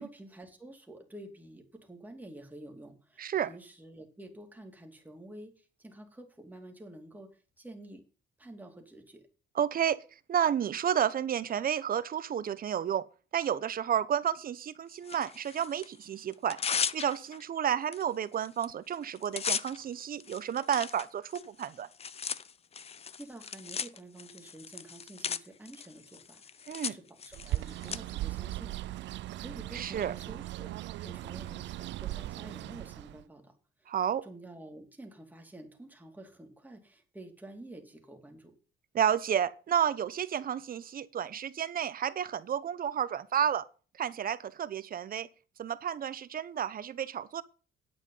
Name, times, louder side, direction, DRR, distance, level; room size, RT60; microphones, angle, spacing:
voice 1, 0.0-8.0 8.4-9.3 22.9-28.8 29.3-30.7 31.0-33.5 33.8-33.9 34.2-38.6, right 1 dB, 10° right, 2.7 m, -49 dB
voice 2, 3.2-3.5 9.5-10.0 10.3-13.0 13.3-16.6 16.9-21.9 26.7-27.0 29.7-30.1 33.9-34.2 38.9-43.7 44.0-45.3 45.6-47.4, right 9 dB, 45° right, 0.9 m, -31 dB
Tearing, 15.0-15.9 16.3-17.4 17.9-18.0 18.3-18.7 18.9-28.0, left 6 dB, 30° left, 0.6 m, -37 dB
Bird, 27.3-33.2, right 16 dB, 65° right, 0.4 m, -38 dB
10.0 x 8.2 x 5.5 m
cardioid pair, 115°, 20 cm